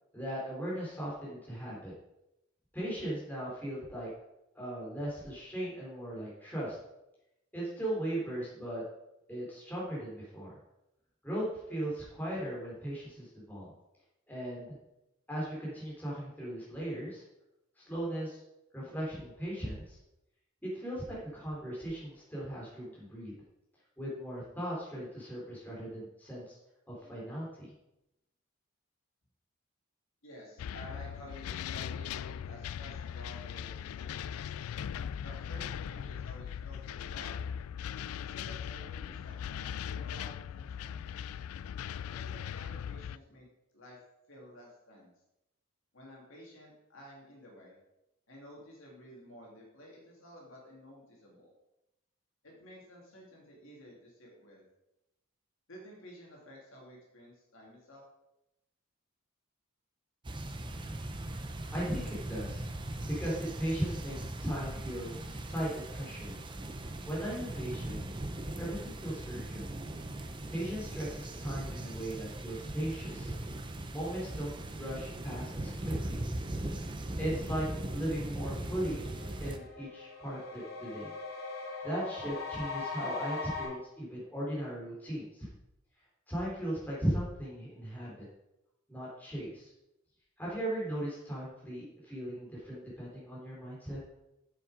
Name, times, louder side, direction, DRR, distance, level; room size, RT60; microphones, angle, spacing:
voice 1, 0.1-1.9 2.7-4.1 4.5-6.8 7.5-8.8 9.3-10.5 11.2-13.7 14.3-14.7 15.3-17.2 17.8-18.4 18.7-20.0 20.6-23.3 24.0-26.6 26.9-27.7 61.7-62.6 63.1-65.1 65.5-66.4 67.0-68.1 68.6-69.6 70.5-73.3 73.9-76.2 77.2-79.1 79.4-81.1 81.8-85.5 86.3-88.3 88.9-89.7 90.4-94.0, right 1 dB, 10° left, -6 dB, 3.6 m, -37 dB
voice 2, 30.2-34.3 35.2-37.4 38.2-41.3 42.0-43.5 43.7-44.0 44.3-45.1 45.9-47.8 48.3-51.5 52.4-54.6 55.7-58.0, equal, 70° left, -3 dB, 2.8 m, -52 dB
sound 1, 30.6-43.2, left 8 dB, 85° left, 0.3 m, -39 dB
sound 2, 60.2-79.6, right 1 dB, 20° right, 0.6 m, -39 dB
sound 3, 78.3-83.6, left 4 dB, 50° left, 3.1 m, -41 dB
7.6 x 7.5 x 5.0 m, 0.88 s
head